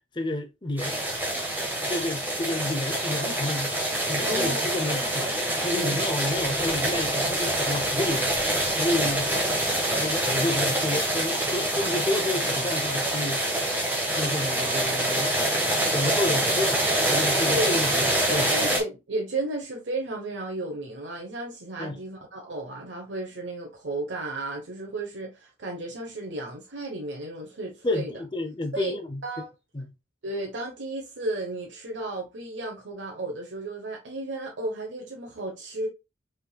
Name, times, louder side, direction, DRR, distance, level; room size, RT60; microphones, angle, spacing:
voice 1, 0.1-1.0 1.3-1.4 1.8-3.8 4.1-8.4 8.7-9.3 10.0-13.5 14.1-15.3 15.9-18.5 21.8-22.0 27.8-29.2 29.7-29.9, left 2 dB, 25° left, 0.7 m, -30 dB
sound 1, 0.8-18.8, right 1 dB, 10° right, 1.4 m, -26 dB
voice 2, 4.3-4.8 5.7-6.0 17.5-17.7 18.3-28.1 28.7-29.0 29.2-29.5 30.2-35.9, right 2 dB, 90° right, 1.0 m, -33 dB
5.5 x 3.7 x 2.3 m
head